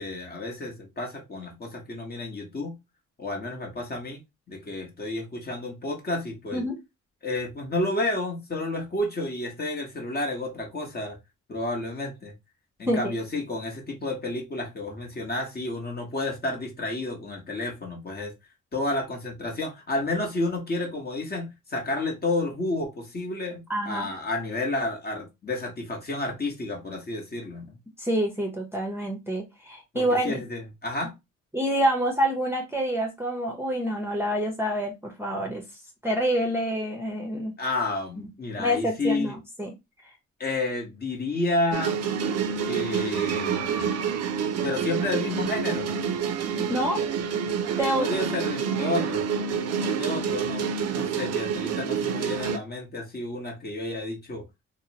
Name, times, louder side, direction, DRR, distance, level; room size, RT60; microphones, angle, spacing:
voice 1, 0.0-2.8 3.2-4.2 4.5-6.6 7.2-11.2 11.5-12.3 12.8-18.3 18.7-27.8 29.9-31.1 37.6-39.4 40.4-42.1 42.6-43.9 44.6-45.9 48.0-49.2 50.0-54.4, left 2 dB, 30° left, 1.0 m, -31 dB
voice 2, 23.7-24.1 28.0-30.4 31.5-35.6 36.0-37.5 38.2-38.3 38.6-39.7 46.6-47.0 47.8-48.1, equal, 10° right, 0.7 m, -27 dB
sound 1, 41.7-52.6, right 7 dB, 55° right, 0.4 m, -28 dB
2.8 x 2.0 x 2.8 m
cardioid pair, 90°, 30 cm